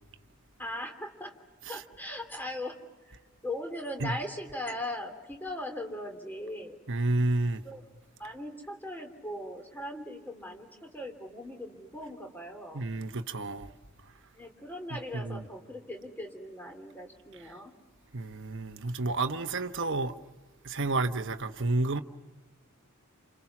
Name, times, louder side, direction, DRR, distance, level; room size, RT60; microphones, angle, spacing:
voice 1, 0.6-1.4 1.7-3.1 3.4-6.8 7.6-7.8 8.2-12.9 14.4-17.7, left 1 dB, 10° left, 3.1 m, -39 dB
voice 2, 6.9-7.6 12.7-13.7 15.1-15.4 18.1-20.1 20.6-22.0, right 2 dB, 55° right, 1.1 m, -30 dB
29.0 x 29.0 x 6.0 m
head